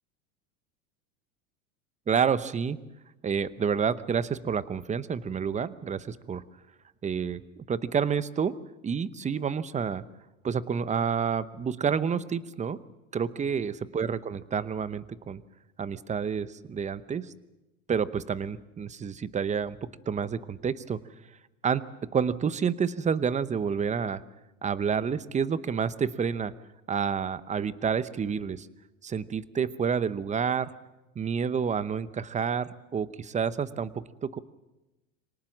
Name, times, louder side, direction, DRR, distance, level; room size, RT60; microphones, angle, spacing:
voice 1, 2.1-2.8 3.2-6.4 7.0-7.4 7.7-8.6 8.8-10.0 10.4-12.8 13.1-15.4 15.8-17.3 17.9-21.0 21.6-21.8 22.1-24.2 24.6-26.5 26.9-28.7 29.0-30.7 31.2-34.4, right 6 dB, 15° right, 16 dB, 0.8 m, -29 dB
25.0 x 18.5 x 7.3 m, 1.0 s
supercardioid pair, 115°, 42 cm